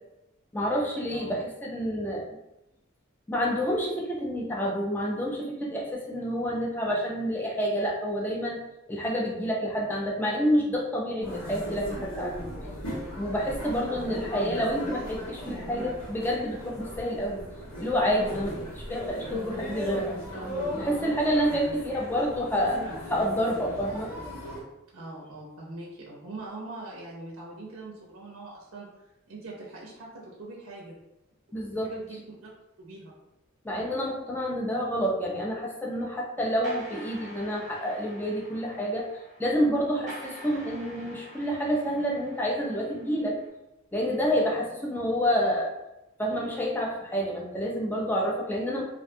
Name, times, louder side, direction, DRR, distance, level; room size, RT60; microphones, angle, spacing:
voice 1, 0.5-2.3 3.3-8.6 8.9-12.4 13.2-17.4 17.8-20.2 20.8-24.1 31.5-31.9 33.6-39.1 39.4-43.4 43.9-45.7 46.2-48.8, equal, 10° left, -2 dB, 0.4 m, -28 dB
sound 1, 11.2-24.6, equal, 85° left, 1.2 m, -37 dB
voice 2, 13.8-14.2 18.5-18.7 21.5-21.8 24.9-30.9 31.8-32.5 32.8-33.1, right 2 dB, 75° right, -4 dB, 0.5 m, -42 dB
sound 2, 36.6-43.5, equal, 35° right, 0.6 m, -46 dB
2.4 x 2.2 x 2.6 m, 0.93 s
head